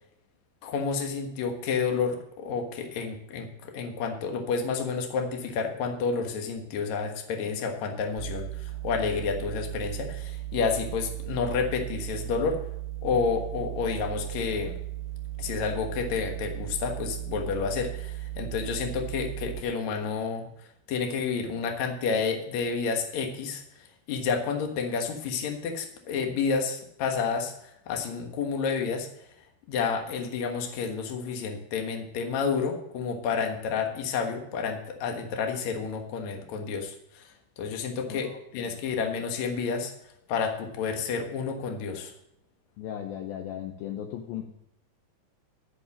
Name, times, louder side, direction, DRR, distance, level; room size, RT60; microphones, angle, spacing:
voice 1, 0.6-12.6 13.0-14.8 15.4-20.5 20.9-29.1 29.7-38.3 38.5-39.9 40.3-42.1, left 5 dB, 60° left, 3 dB, 2.2 m, -30 dB
sound 1, 8.2-19.6, right 16 dB, 40° left, 1.3 m, -36 dB
voice 2, 38.1-38.8 42.8-44.5, left 10 dB, 75° left, 3 dB, 2.4 m, -37 dB
13.5 x 5.3 x 7.1 m, 0.75 s
omnidirectional pair, 4.7 m